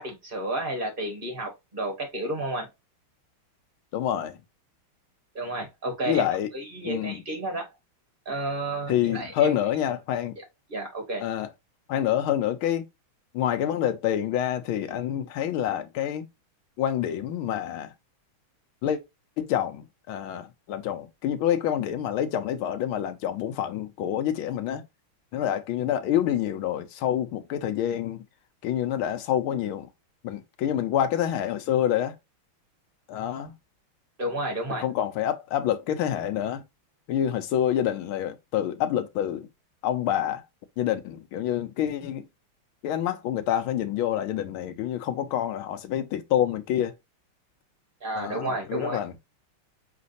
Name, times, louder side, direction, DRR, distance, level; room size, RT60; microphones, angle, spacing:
voice 1, 0.0-2.7 5.3-6.3 6.5-7.7 8.3-9.6 10.4-10.5 10.7-11.3 34.2-34.8 48.0-49.0, right 2 dB, 25° right, 1.8 m, -31 dB
voice 2, 3.9-4.4 6.1-6.5 6.8-7.2 8.9-10.4 11.2-11.5 11.9-12.8 13.3-16.2 16.8-17.9 18.8-19.0 19.4-24.8 25.3-28.2 28.6-29.9 30.2-32.1 33.1-33.5 34.8-36.6 37.1-39.5 39.8-40.4 40.8-42.3 42.8-46.9 48.2-49.2, left 10 dB, 85° left, 1.6 m, -27 dB
5.1 x 3.8 x 2.6 m
omnidirectional pair, 2.3 m